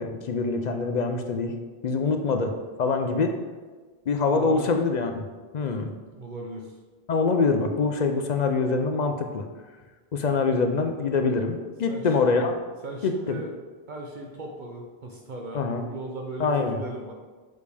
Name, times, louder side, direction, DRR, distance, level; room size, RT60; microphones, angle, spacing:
voice 1, 0.0-1.5 1.8-3.3 4.1-5.2 5.5-5.9 7.1-9.4 10.1-12.5 13.0-13.4 15.5-15.8 16.4-16.8, left 4 dB, 55° left, 5 dB, 0.6 m, -24 dB
voice 2, 4.3-4.7 6.1-6.7 11.9-12.1 12.8-13.5 13.9-17.1, right 2 dB, 55° right, 0 dB, 0.8 m, -38 dB
6.5 x 5.1 x 3.4 m, 1.4 s
omnidirectional pair, 1.0 m